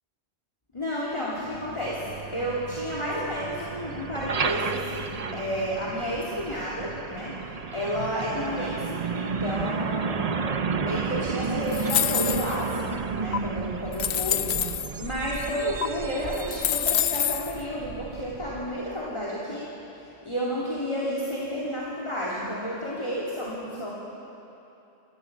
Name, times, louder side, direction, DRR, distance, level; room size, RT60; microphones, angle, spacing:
voice 1, 0.7-7.3 7.7-10.5 10.8-19.7 20.0-23.9, equal, 25° left, -6 dB, 2.8 m, -31 dB
Truck, 1.4-19.1, right 5 dB, 40° right, 0.7 m, -33 dB
sound 1, 11.7-12.7 13.3-13.4 13.9-14.9 15.8-15.9 16.3-17.5, left 9 dB, 65° left, 0.8 m, -26 dB
27.5 x 14.5 x 7.4 m, 2.9 s
omnidirectional pair, 1.1 m